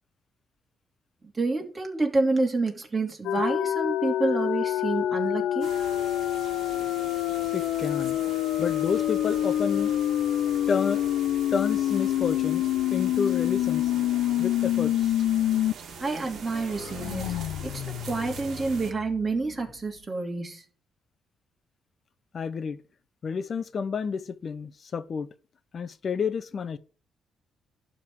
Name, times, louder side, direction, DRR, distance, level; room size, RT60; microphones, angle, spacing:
voice 1, 1.3-5.8 16.0-17.3 17.6-20.6, right 3 dB, 25° right, 2.7 m, -28 dB
sound 1, 3.2-15.7 16.1-16.2 16.5-19.2, left 12 dB, 85° left, 0.4 m, -27 dB
sound 2, 5.6-18.9, right 6 dB, 65° right, 1.7 m, -43 dB
voice 2, 7.5-8.2 8.6-10.0 10.7-11.1 11.5-12.6 12.9-13.9 14.4-15.2 22.3-22.8 23.2-25.3 25.7-26.8, left 5 dB, 45° left, 0.9 m, -30 dB
11.5 x 3.9 x 7.7 m
cardioid pair, 90°, 0 cm